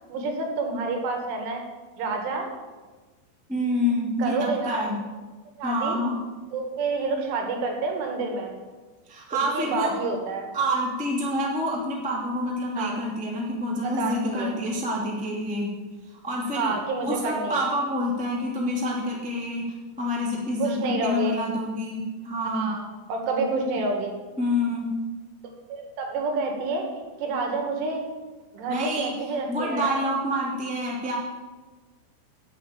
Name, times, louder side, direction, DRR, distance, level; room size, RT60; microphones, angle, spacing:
voice 1, 0.1-1.6 2.0-2.5 4.2-4.8 5.6-6.0 6.5-8.5 9.3-10.5 12.8-13.0 13.8-14.6 16.5-17.6 20.6-21.4 22.5-22.8 23.1-24.1 25.7-26.9 27.2-28.1 28.5-30.0, right 3 dB, 75° right, 3 dB, 4.2 m, -28 dB
voice 2, 3.5-5.0 5.6-6.2 9.1-9.9 10.5-15.7 16.2-16.7 17.0-22.7 24.4-24.9 28.7-29.1 29.5-31.2, left 1 dB, 5° right, -3 dB, 0.7 m, -27 dB
10.5 x 8.4 x 8.3 m, 1.3 s
omnidirectional pair, 5.8 m